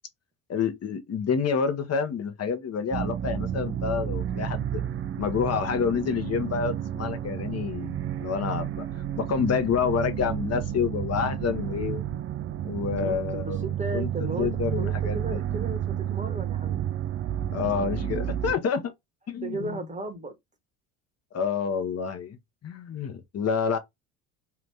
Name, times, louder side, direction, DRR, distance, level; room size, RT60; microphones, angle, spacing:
voice 1, 0.5-4.8 5.2-8.8 9.2-12.0 12.6-13.7 13.9-14.1 14.4-15.4 17.5-18.9 19.3-19.9 21.3-23.8, left 6 dB, 35° left, 0.8 m, -28 dB
sound 1, 2.9-18.6, right 10 dB, 35° right, 0.4 m, -31 dB
voice 2, 13.0-14.5 14.8-16.8 18.8-18.9 19.4-20.3, right 2 dB, 15° right, 1.0 m, -35 dB
2.9 x 2.5 x 3.3 m
supercardioid pair, 75°, 42 cm